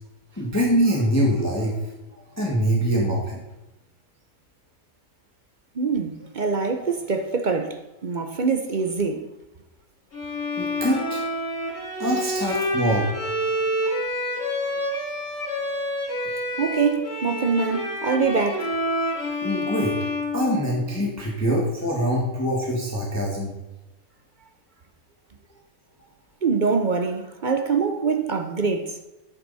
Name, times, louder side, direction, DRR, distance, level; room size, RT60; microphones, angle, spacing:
voice 1, 0.4-1.7 2.4-3.4 10.6-11.2 12.0-13.1 19.4-19.9 20.3-23.5, equal, 10° left, 1.7 m, -23 dB
voice 2, 5.8-9.2 16.6-18.7 26.4-28.9, right 5 dB, 50° right, 0.5 m, -24 dB
Bowed string instrument, 10.1-21.1, left 1 dB, 60° left, 4.1 m, -28 dB
10.5 x 9.3 x 4.1 m
omnidirectional pair, 1.7 m